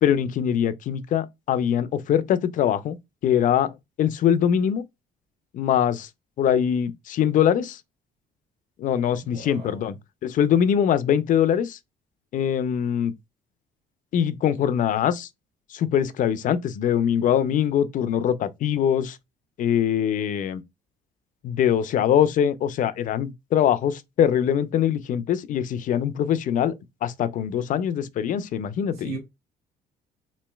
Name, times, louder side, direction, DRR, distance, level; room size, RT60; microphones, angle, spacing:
voice 1, 0.0-3.0 3.2-4.9 5.5-6.1 6.4-7.8 8.8-10.0 10.2-11.8 12.3-13.1 14.1-15.3 15.7-19.2 19.6-20.6 21.4-26.7 27.0-29.2, left 9 dB, 50° left, 0.4 m, -23 dB
voice 2, 9.3-9.9 29.0-29.2, right 4 dB, 75° right, 1.3 m, -37 dB
3.1 x 2.7 x 2.2 m
cardioid pair, 110°, 17 cm